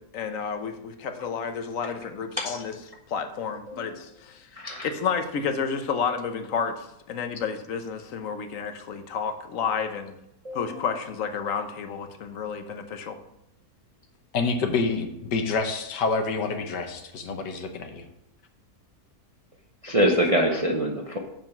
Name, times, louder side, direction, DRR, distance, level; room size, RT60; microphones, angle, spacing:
voice 1, 0.1-2.7 3.1-10.2 10.5-13.2, left 6 dB, 60° left, 7 dB, 1.1 m, -31 dB
voice 2, 3.7-4.0 4.6-4.9 10.4-10.8 19.8-21.2, equal, 35° right, 0 dB, 0.6 m, -25 dB
voice 3, 14.3-18.0, left 4 dB, 90° left, 5 dB, 1.6 m, -27 dB
7.2 x 5.6 x 5.8 m, 0.84 s
omnidirectional pair, 1.8 m